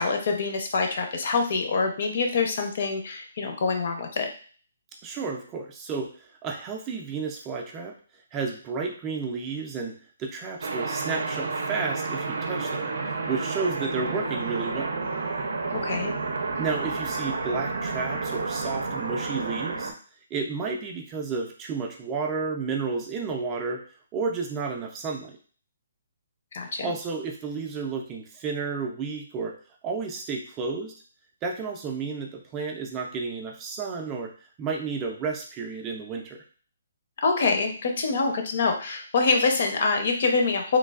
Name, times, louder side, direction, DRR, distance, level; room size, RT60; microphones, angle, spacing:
voice 1, 0.0-4.3 15.7-16.1 26.5-26.9 37.2-40.8, left 4 dB, 55° left, 4 dB, 0.6 m, -25 dB
voice 2, 5.0-7.9 8.3-15.0 16.6-19.9 20.3-23.8 24.1-25.4 26.8-29.5 29.8-30.9 31.4-34.3 34.6-36.4, right 4 dB, 20° right, 2 dB, 0.3 m, -32 dB
sound 1, 10.6-19.9, right 3 dB, 80° right, 0.5 m, -30 dB
3.1 x 2.2 x 2.3 m, 0.41 s
hypercardioid pair, 165°, 0 cm